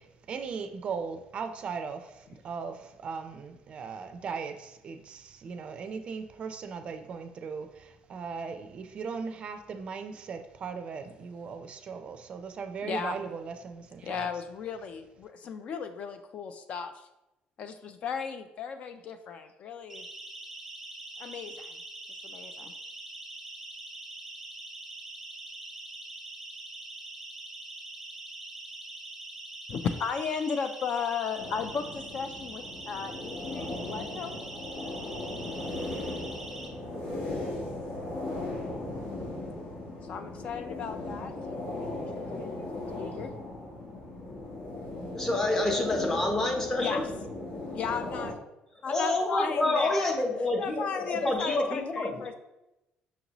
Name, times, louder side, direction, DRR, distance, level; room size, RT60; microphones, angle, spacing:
voice 1, 0.0-14.3, right 5 dB, 45° right, 8 dB, 0.4 m, -38 dB
voice 2, 12.8-13.2 14.0-17.1 17.6-20.1 21.2-21.7 22.2-22.7 29.7-34.4 40.0-43.3 46.8-47.0 47.7-48.4 48.8-50.0 50.6-52.3, left 6 dB, 50° left, 8 dB, 0.3 m, -35 dB
Siren, 19.9-36.7, right 2 dB, ahead, 1.0 m, -43 dB
sound 1, 31.4-48.3, left 2 dB, 75° left, 1.1 m, -37 dB
voice 3, 45.1-47.0 48.9-52.3, left 2 dB, 15° left, 2 dB, 0.8 m, -28 dB
5.9 x 2.6 x 2.9 m, 0.92 s
cardioid pair, 125°, 3 cm